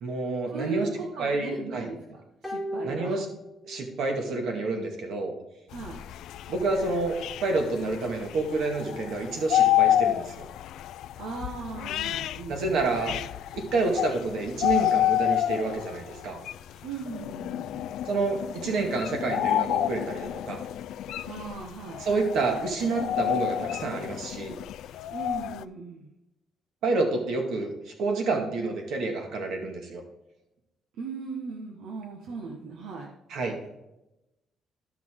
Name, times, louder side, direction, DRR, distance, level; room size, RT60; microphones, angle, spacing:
voice 1, 0.0-0.9 1.2-1.9 2.8-3.3 3.7-5.3 6.5-10.4 12.5-13.2 13.6-16.4 18.1-20.6 22.0-24.6 26.8-30.0 33.3-33.7, right 3 dB, 65° right, 3 dB, 2.1 m, -29 dB
voice 2, 0.5-3.2 5.7-6.0 11.2-12.6 16.8-17.9 21.2-22.0 25.1-26.1 31.0-33.1, right 4 dB, 80° right, 0 dB, 1.4 m, -37 dB
sound 1, 2.4-4.1 4.4-4.5, equal, ahead, 1.2 m, -36 dB
sound 2, 5.7-25.6, left 12 dB, 75° left, 0.3 m, -29 dB
13.0 x 5.9 x 3.8 m, 0.92 s
cardioid pair, 165°, 0 cm